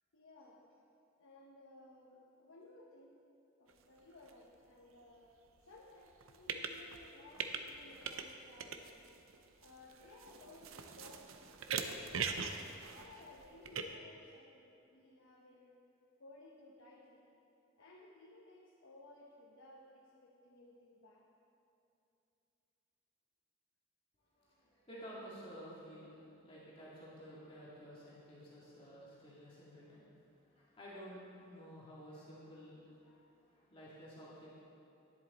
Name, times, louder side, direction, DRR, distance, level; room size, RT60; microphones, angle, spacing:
voice 1, 0.1-0.8 1.2-3.2 3.6-5.3 5.6-9.1 9.6-12.4 12.9-15.8 16.2-17.3 17.8-21.3, left 2 dB, 75° left, -3 dB, 1.0 m, -59 dB
sound 1, 3.7-3.8 4.2-4.3 6.1-7.0 7.3-8.3 8.6-13.8, right 6 dB, 85° right, 0.6 m, -42 dB
voice 2, 24.4-30.1 30.3-34.6, equal, 25° left, -8 dB, 2.0 m, -53 dB
10.5 x 10.5 x 4.1 m, 2.8 s
head